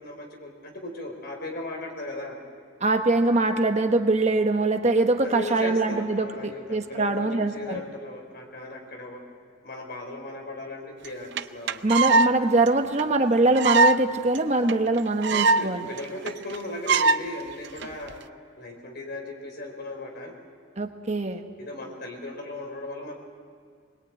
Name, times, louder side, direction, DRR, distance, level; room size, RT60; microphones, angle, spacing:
voice 1, 0.0-2.4 5.2-9.2 9.6-11.8 15.2-18.2 18.6-20.3 21.6-23.2, left 2 dB, 55° left, 2 dB, 4.5 m, -37 dB
voice 2, 2.8-7.8 11.8-15.9 20.8-21.4, right 2 dB, 35° right, 6 dB, 1.1 m, -23 dB
sound 1, 11.0-11.1 11.4-11.5 11.7-12.3 12.7-12.8 13.0-13.1 13.5-14.0 14.3-14.4 14.7-14.8 15.0-15.7 16.0-16.1 16.3-16.6 16.9-17.2 17.8-18.1, right 3 dB, 65° right, 0.6 m, -20 dB
22.0 x 21.5 x 8.9 m, 2.1 s
head